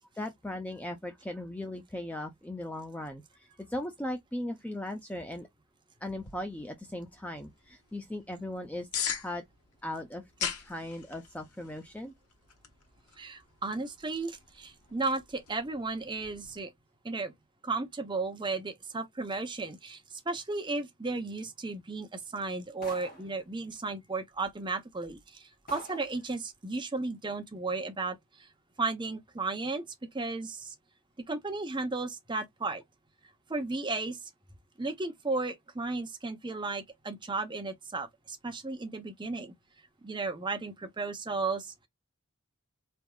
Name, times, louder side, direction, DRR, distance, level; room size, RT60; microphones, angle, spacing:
voice 1, 0.2-5.5 6.0-9.4 9.8-12.1, left 1 dB, 5° left, 0.4 m, -38 dB
sound 1, 6.0-16.6, left 7 dB, 85° left, 1.1 m, -42 dB
voice 2, 13.2-16.7 17.0-17.3 17.6-28.5 28.8-29.9 30.1-30.7 31.3-32.8 33.5-34.3 34.8-39.5 40.0-41.9, right 3 dB, 20° right, 0.8 m, -34 dB
sound 2, 22.8-23.4 24.4-24.5 25.1-25.2 25.7-26.2, left 1 dB, 40° left, 2.5 m, -46 dB
4.0 x 3.5 x 2.3 m
head